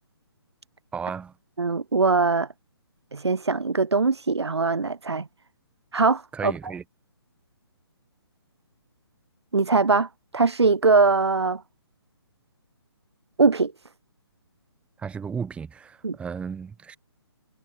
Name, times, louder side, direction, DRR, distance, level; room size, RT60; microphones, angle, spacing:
voice 1, 0.9-1.3 6.3-6.8 15.0-17.0, right 6 dB, 10° right, 5.5 m, -34 dB
voice 2, 1.6-2.5 3.1-5.3 5.9-6.5 9.5-10.1 10.3-11.6 13.4-13.7 16.0-16.2, right 4 dB, 85° right, 2.2 m, -21 dB
hypercardioid pair, 145°, 14 cm